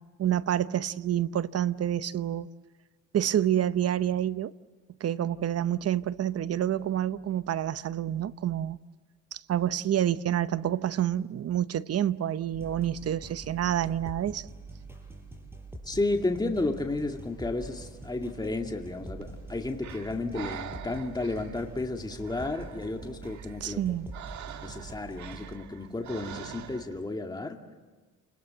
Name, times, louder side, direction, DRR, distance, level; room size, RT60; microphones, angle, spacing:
voice 1, 0.0-2.5 3.1-4.5 5.0-8.8 9.3-14.5 23.6-24.1, right 11 dB, 55° right, 0.8 m, -28 dB
sound 1, 12.5-25.5, right 2 dB, 10° right, 6.2 m, -45 dB
voice 2, 15.9-23.8 24.6-27.6, left 2 dB, 15° left, 2.2 m, -32 dB
Breathing, 19.2-27.1, right 9 dB, 70° right, 1.5 m, -45 dB
29.5 x 21.0 x 7.8 m
cardioid pair, 90°, 30 cm